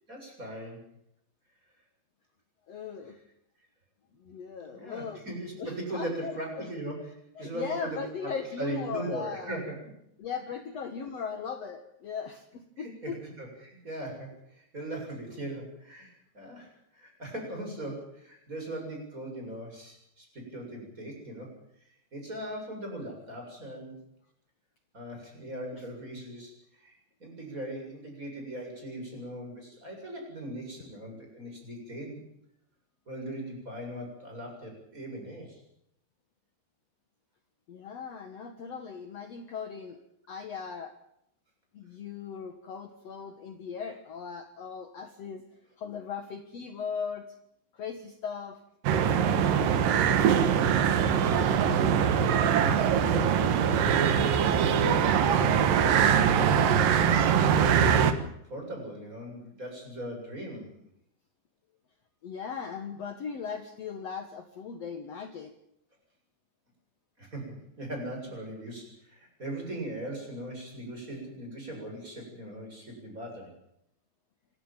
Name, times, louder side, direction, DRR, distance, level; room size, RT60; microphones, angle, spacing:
voice 1, 0.1-0.8 4.7-7.1 7.4-8.3 8.6-9.7 12.8-21.5 22.1-24.0 24.9-26.5 26.8-32.2 33.1-35.6 52.6-54.4 55.3-55.9 57.1-60.7 67.2-73.5, right 1 dB, 15° right, 1 dB, 7.5 m, -39 dB
voice 2, 2.7-3.2 4.2-5.2 5.6-6.7 7.4-9.6 10.2-13.2 25.7-25.8 37.7-40.0 40.3-40.9 41.7-45.4 45.8-47.2 47.7-48.6 62.2-65.5, left 6 dB, 65° left, 6 dB, 1.6 m, -38 dB
sound 1, 48.8-58.1, right 8 dB, 65° right, 2.6 m, -23 dB
26.5 x 13.5 x 9.0 m, 0.77 s
omnidirectional pair, 5.2 m